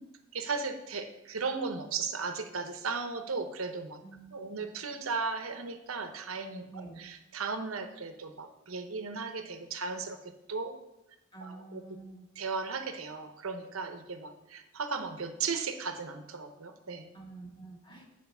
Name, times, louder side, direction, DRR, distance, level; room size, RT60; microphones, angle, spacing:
voice 1, 0.0-4.0 4.3-10.2 10.5-10.8 11.4-11.8 12.4-17.1, right 4 dB, 85° right, 7 dB, 0.9 m, -36 dB
voice 2, 4.0-4.6 6.7-7.0 11.3-12.2 17.1-18.1, right 3 dB, 25° left, -1 dB, 1.9 m, -48 dB
9.4 x 5.0 x 5.5 m, 0.90 s
head